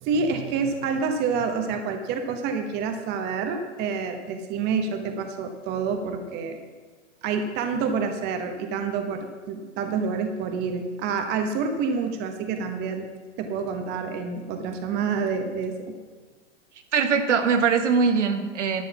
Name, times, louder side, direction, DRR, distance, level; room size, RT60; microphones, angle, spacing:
voice 1, 0.0-6.6 7.2-13.1 13.4-16.0, right 5 dB, 25° right, 6 dB, 1.1 m, -28 dB
voice 2, 16.9-18.8, right 5 dB, 70° right, 7 dB, 1.4 m, -21 dB
11.5 x 6.5 x 7.0 m, 1.4 s
hypercardioid pair, 125°, 37 cm